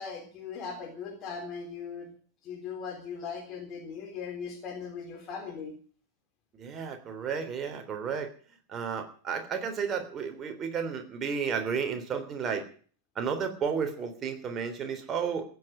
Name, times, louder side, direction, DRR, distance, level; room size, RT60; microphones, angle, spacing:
voice 1, 0.0-2.1 2.4-5.7, left 6 dB, 35° left, 3 dB, 3.8 m, -39 dB
voice 2, 6.6-8.3 8.7-12.6 13.1-15.4, right 6 dB, 25° right, 5 dB, 3.3 m, -32 dB
15.5 x 8.2 x 9.6 m, 0.44 s
figure-of-eight pair, 90°, 0 cm